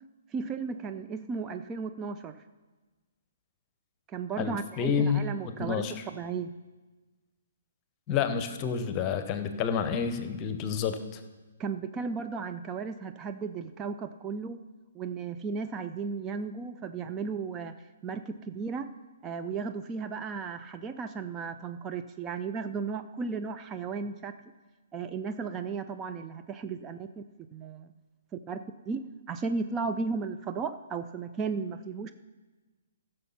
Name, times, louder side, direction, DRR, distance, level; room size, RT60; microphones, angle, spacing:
voice 1, 0.3-2.4 4.1-6.5 11.6-14.6 14.9-17.7 18.0-18.9 19.2-24.3 24.9-27.2 27.5-27.9 28.5-28.6 28.9-32.1, right 5 dB, 20° right, 8 dB, 0.5 m, -35 dB
voice 2, 4.4-6.0 8.1-11.2, left 6 dB, 25° left, 9 dB, 1.0 m, -29 dB
15.0 x 6.4 x 5.8 m, 1.3 s
figure-of-eight pair, 125°, 0 cm